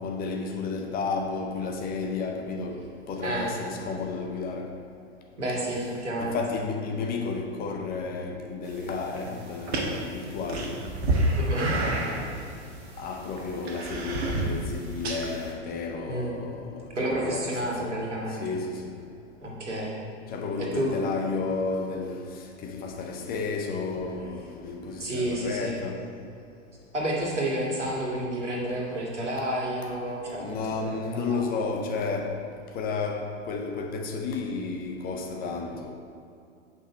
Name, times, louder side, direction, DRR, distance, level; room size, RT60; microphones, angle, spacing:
voice 1, 0.0-2.8 3.1-4.7 6.2-10.8 11.6-12.3 13.0-17.9 18.4-18.9 20.3-22.3 22.6-26.0 30.4-32.4 32.7-35.9, left 4 dB, 25° left, 3 dB, 0.8 m, -32 dB
voice 2, 5.4-6.4 11.4-11.7 16.1-16.4 17.0-18.4 19.4-20.0 20.6-20.9 25.0-25.8 26.9-31.4, right 1 dB, 75° right, -3 dB, 2.1 m, -30 dB
sound 1, 8.6-15.5, right 1 dB, 60° right, 1.4 m, -30 dB
8.8 x 5.8 x 4.4 m, 2.4 s
figure-of-eight pair, 95°, 35 cm